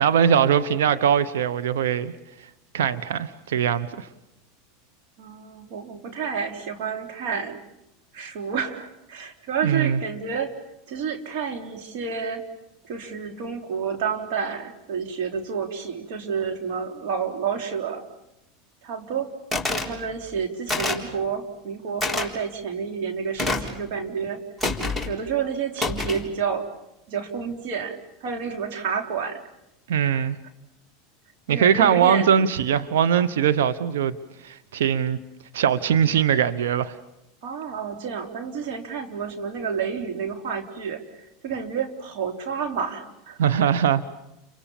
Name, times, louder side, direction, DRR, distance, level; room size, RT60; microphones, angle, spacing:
voice 1, 0.0-2.1 2.7-4.1 9.6-10.0 29.9-30.4 31.5-34.2 34.4-35.2 35.5-36.9 43.4-44.1, right 8 dB, 80° right, 1.0 m, -21 dB
voice 2, 5.2-7.6 8.1-10.5 10.9-12.4 12.9-18.1 18.8-19.3 19.7-24.4 25.1-26.7 27.1-29.4 30.0-30.3 31.5-32.5 37.4-43.4, right 6 dB, 65° right, 3.6 m, -30 dB
sound 1, 19.5-19.9 20.7-21.1 22.0-22.3 23.4-23.8 24.6-25.1 25.8-26.3, left 2 dB, 5° right, 3.9 m, -26 dB
30.0 x 24.5 x 7.2 m
hypercardioid pair, 105°, 0 cm